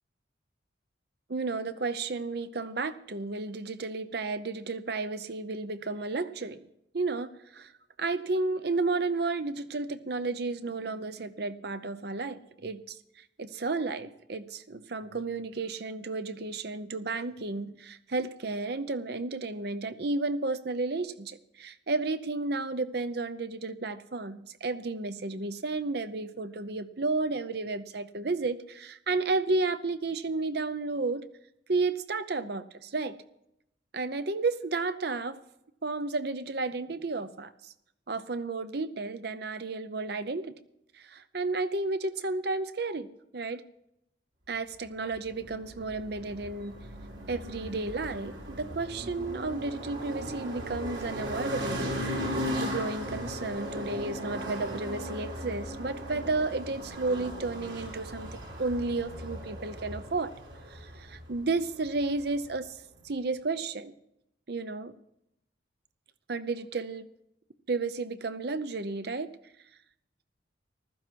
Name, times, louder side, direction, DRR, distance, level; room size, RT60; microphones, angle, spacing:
voice 1, 1.3-6.6 6.9-7.7 8.0-31.2 31.7-33.2 33.9-35.4 35.8-37.7 38.1-40.5 40.9-43.6 44.5-46.8 47.3-60.3 60.7-62.8 63.0-63.9 64.5-64.9 66.3-67.1 67.7-69.3, right 3 dB, 55° right, 13 dB, 0.7 m, -32 dB
sound 1, 45.1-62.6, equal, 70° right, 3.8 m, -37 dB
15.0 x 12.5 x 4.6 m, 0.80 s
head